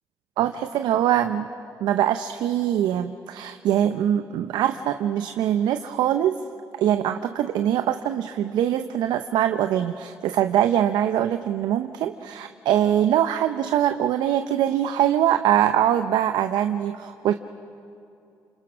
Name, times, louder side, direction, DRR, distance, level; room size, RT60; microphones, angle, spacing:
voice 1, 0.4-1.5 1.8-6.4 6.8-17.3, right 11 dB, 80° right, 8 dB, 0.7 m, -23 dB
29.5 x 26.5 x 6.2 m, 2.8 s
supercardioid pair, 50°, 7 cm